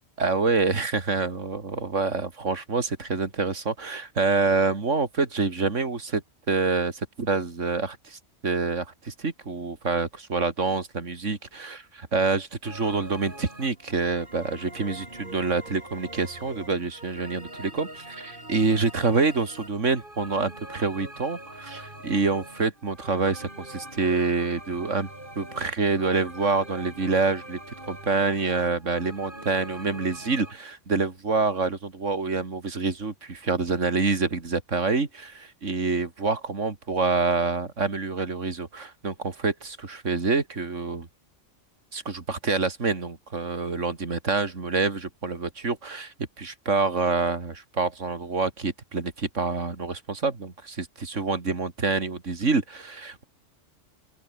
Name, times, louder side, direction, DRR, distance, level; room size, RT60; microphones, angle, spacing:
voice 1, 0.2-6.2 6.5-25.1 25.4-27.6 27.9-41.1 41.9-53.2, right 4 dB, 80° right, 2.9 m, -27 dB
sound 1, 12.6-30.5, right 1 dB, 45° right, 6.8 m, -43 dB
open air
omnidirectional pair, 1.3 m